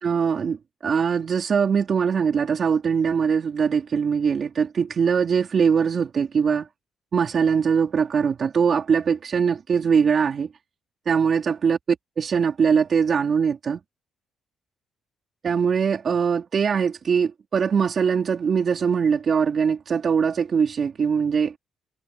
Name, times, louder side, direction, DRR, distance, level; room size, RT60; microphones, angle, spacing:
voice 1, 0.0-6.7 7.1-10.5 11.0-13.8 15.4-21.6, right 6 dB, 50° right, 3.1 m, -22 dB
cardioid pair, 90°, 0 cm